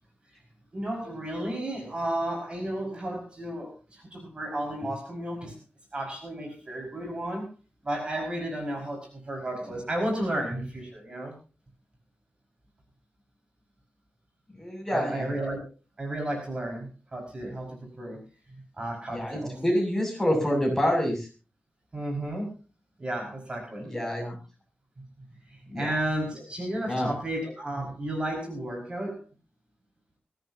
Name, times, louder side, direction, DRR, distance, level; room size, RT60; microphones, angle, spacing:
voice 1, 0.7-5.6 5.9-7.5 7.8-11.3 14.9-15.6 16.0-18.2 18.5-19.6 21.9-22.5 23.0-23.9 25.2-29.2, right 1 dB, 30° right, 1 dB, 5.3 m, -33 dB
voice 2, 14.5-15.3 19.1-21.3 23.8-24.4 25.7-25.9 26.9-27.1, equal, 10° left, 1 dB, 6.8 m, -27 dB
22.0 x 16.5 x 2.8 m, 0.33 s
wide cardioid pair, 170°, 4 cm